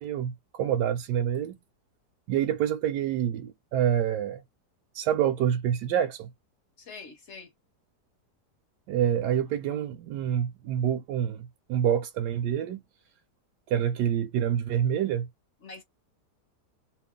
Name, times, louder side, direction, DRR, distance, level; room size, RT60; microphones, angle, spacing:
voice 1, 0.0-1.6 2.3-4.4 4.9-6.3 8.9-12.8 13.7-15.3, right 9 dB, 80° right, 1.2 m, -27 dB
voice 2, 6.8-7.5 15.6-15.8, left 4 dB, 55° left, 0.9 m, -44 dB
2.9 x 2.3 x 3.6 m
omnidirectional pair, 1.8 m